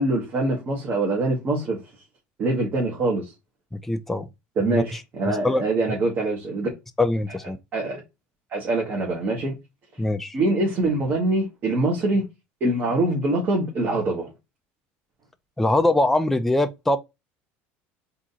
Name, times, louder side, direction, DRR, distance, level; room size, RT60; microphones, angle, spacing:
voice 1, 0.0-1.8 2.4-3.3 4.6-6.7 7.7-8.0 8.5-9.5 10.3-12.3 12.6-14.3, right 2 dB, 40° right, 1.4 m, -24 dB
voice 2, 3.7-4.3 4.7-4.8 5.3-5.6 7.0-7.6 10.0-10.4 15.6-17.0, left 2 dB, 5° left, 0.4 m, -22 dB
3.7 x 2.8 x 3.8 m
supercardioid pair, 120°, 6 cm